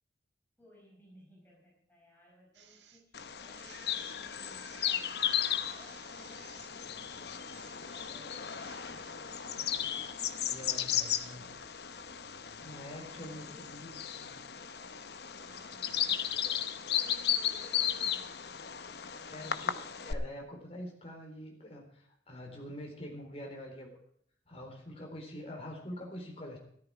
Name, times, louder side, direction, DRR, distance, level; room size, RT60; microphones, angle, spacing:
voice 1, 0.6-5.3 5.7-7.5 7.9-9.9 10.7-11.8 12.1-12.3 13.1-13.8 15.4-19.6, left 1 dB, 10° left, -3 dB, 5.3 m, -60 dB
sound 1, 2.5-3.0 3.5-4.2 4.5-5.0 5.5-6.7 7.2-9.6, right 8 dB, 80° right, 1.6 m, -58 dB
Bird vocalization bird call bird song, 3.1-20.1, left 9 dB, 60° left, 0.9 m, -35 dB
voice 2, 10.5-11.4 12.6-14.4 19.3-24.0 24.5-26.6, left 1 dB, 35° left, 1 dB, 3.9 m, -45 dB
13.5 x 13.0 x 4.9 m, 0.66 s
head